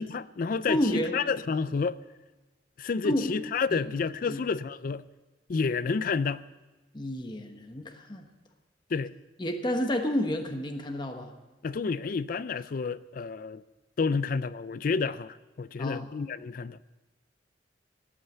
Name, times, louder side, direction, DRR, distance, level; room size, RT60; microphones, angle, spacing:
voice 1, 0.0-2.0 2.8-5.0 5.5-6.4 8.9-9.1 11.6-13.6 14.0-16.8, left 5 dB, 50° left, 0.4 m, -30 dB
voice 2, 0.7-1.2 3.0-3.4 3.7-3.9 4.2-4.4 6.9-8.3 9.4-11.3 15.8-16.1, left 1 dB, 25° left, 1.1 m, -30 dB
16.5 x 8.9 x 7.8 m
head